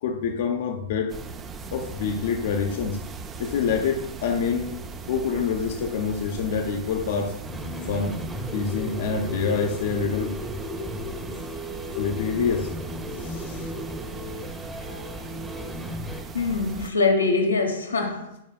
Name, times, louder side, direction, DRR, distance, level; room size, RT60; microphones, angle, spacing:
voice 1, 0.0-1.2 1.7-3.0 3.4-4.8 5.1-7.3 7.9-8.1 8.5-10.3 11.9-12.7 13.1-13.7, left 6 dB, 60° left, 0.7 m, -26 dB
sound 1, 1.1-16.9, right 4 dB, 25° right, 0.5 m, -39 dB
sound 2, 7.4-16.2, left 1 dB, 5° right, 0.9 m, -35 dB
voice 2, 16.3-18.4, left 3 dB, 90° left, 1.1 m, -23 dB
9.4 x 4.9 x 2.3 m
hypercardioid pair, 105°, 0 cm